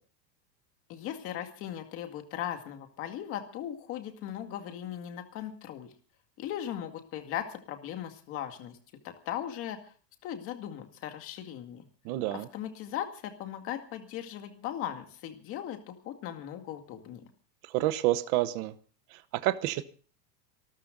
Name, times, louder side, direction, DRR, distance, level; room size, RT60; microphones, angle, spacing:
voice 1, 0.9-5.9 6.4-8.8 9.0-9.9 10.2-11.9 12.3-17.2, left 10 dB, 25° left, 6 dB, 2.1 m, -38 dB
voice 2, 12.0-12.5 17.7-18.7 19.4-19.8, right 15 dB, 25° right, 13 dB, 0.8 m, -28 dB
25.5 x 13.5 x 3.9 m, 0.41 s
supercardioid pair, 180°, 49 cm